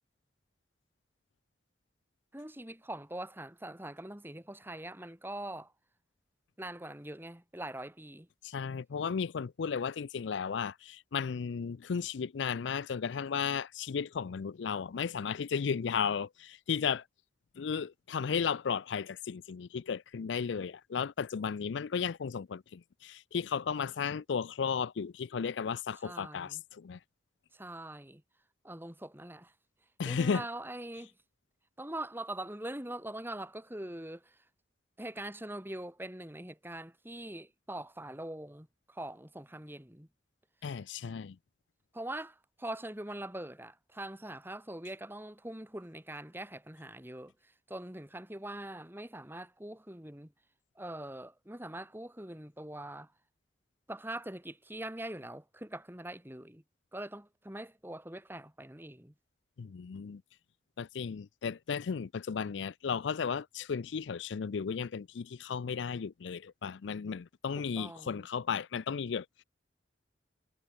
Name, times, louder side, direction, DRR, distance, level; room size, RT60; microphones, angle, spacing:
voice 1, 2.3-5.7 6.6-8.3 26.0-26.6 27.5-28.2 28.6-29.5 30.1-31.1 31.8-34.4 35.0-40.1 41.9-50.3 50.8-53.1 53.9-56.6 56.9-59.1 67.8-68.2, right 1 dB, 10° right, 3.6 m, -43 dB
voice 2, 8.4-17.0 17.6-27.0 30.0-30.4 40.6-41.4 59.6-60.2 60.8-69.4, left 6 dB, 75° left, 0.4 m, -34 dB
head